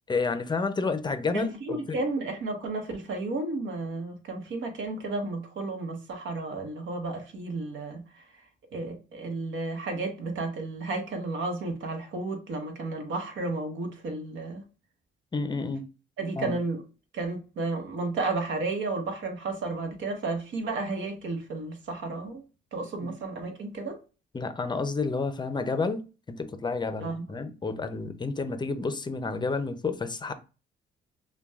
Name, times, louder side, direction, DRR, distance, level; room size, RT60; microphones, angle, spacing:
voice 1, 0.1-2.0 15.3-15.9 16.4-16.6 23.0-23.1 24.3-26.0 26.3-30.3, left 4 dB, 20° left, 0.5 m, -30 dB
voice 2, 1.3-8.4 8.7-14.6 16.2-16.8 17.1-22.4 22.7-24.0 27.0-27.2, right 3 dB, 75° right, 1.1 m, -32 dB
5.8 x 2.3 x 2.3 m
cardioid pair, 90°, 20 cm